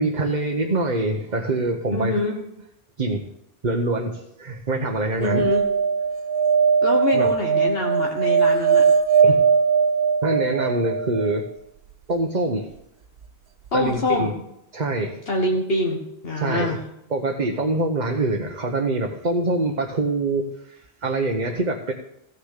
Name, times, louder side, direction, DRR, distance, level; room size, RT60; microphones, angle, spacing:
voice 1, 0.0-2.2 3.0-3.3 3.6-5.5 7.1-7.3 9.2-9.5 10.2-11.5 12.1-12.7 13.7-14.3 14.7-15.2 16.4-16.8 17.1-21.9, right 2 dB, 45° right, 2 dB, 1.2 m, -25 dB
voice 2, 1.9-2.4 5.2-5.7 6.8-8.9 13.7-14.3 15.3-16.8, left 2 dB, 65° left, 1 dB, 1.6 m, -24 dB
sound 1, 5.2-11.4 13.7-13.8 13.9-14.0, right 6 dB, 65° right, 0.9 m, -20 dB
15.0 x 6.8 x 6.6 m, 0.84 s
omnidirectional pair, 1.1 m